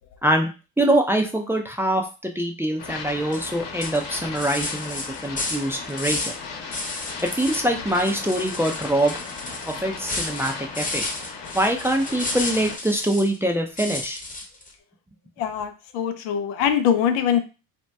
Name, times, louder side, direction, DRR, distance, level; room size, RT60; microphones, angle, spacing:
voice 1, 0.8-6.3 7.2-9.1 9.7-11.0 11.5-14.2, right 1 dB, 5° right, 2 dB, 0.4 m, -24 dB
sound 1, 2.8-12.8, left 5 dB, 60° left, 1.1 m, -36 dB
sound 2, 3.3-3.5 3.8-6.4 6.7-7.6 7.9-13.4 13.8-14.7, left 2 dB, 20° left, 0.9 m, -32 dB
voice 2, 15.4-17.4, left 8 dB, 85° left, 8 dB, 0.6 m, -23 dB
2.8 x 2.1 x 3.3 m, 0.32 s
supercardioid pair, 75°, 44 cm